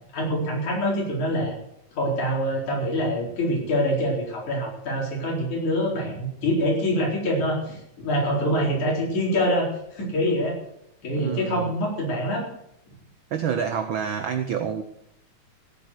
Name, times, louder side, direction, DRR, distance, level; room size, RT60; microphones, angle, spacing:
voice 1, 0.1-1.6 2.0-10.6 11.0-12.5, equal, 75° left, -2 dB, 5.7 m, -25 dB
voice 2, 11.1-11.7 13.3-14.8, right 7 dB, 80° right, 7 dB, 1.1 m, -28 dB
16.5 x 8.4 x 6.4 m, 0.76 s
omnidirectional pair, 3.4 m